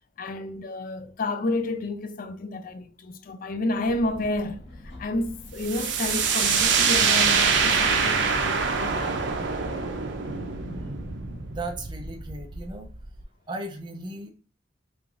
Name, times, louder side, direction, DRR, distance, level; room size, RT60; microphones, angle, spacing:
voice 1, 0.2-4.6 5.0-9.2, left 2 dB, 50° left, 0.4 m, -30 dB
sound 1, 3.8-9.7, equal, 80° left, 1.5 m, -44 dB
sound 2, 5.6-13.2, right 5 dB, 85° right, 0.6 m, -25 dB
voice 2, 11.5-12.9 13.5-14.3, right 2 dB, 25° right, 0.4 m, -36 dB
3.4 x 3.2 x 2.5 m
head